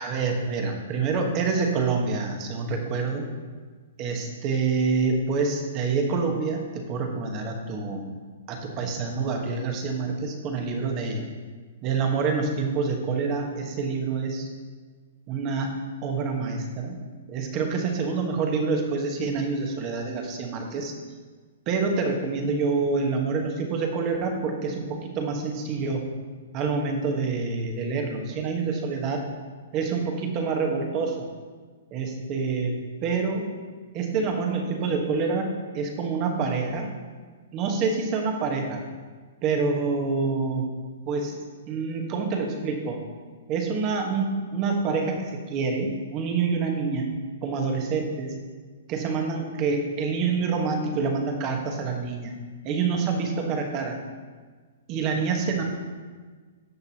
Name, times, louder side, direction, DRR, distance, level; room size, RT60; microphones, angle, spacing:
voice 1, 0.0-3.3 4.0-8.1 8.5-11.2 11.8-14.5 15.3-15.7 16.0-17.0 17.3-20.9 21.7-26.0 26.5-29.2 29.7-31.3 31.9-33.5 33.9-36.9 37.5-38.8 39.4-40.7 41.1-41.4 41.7-43.0 43.5-47.1 47.4-48.3 48.9-52.3 52.6-54.0 54.9-55.6, right 4 dB, 30° right, 3 dB, 1.4 m, -27 dB
10.5 x 6.6 x 3.0 m, 1.5 s
hypercardioid pair, 145°, 0 cm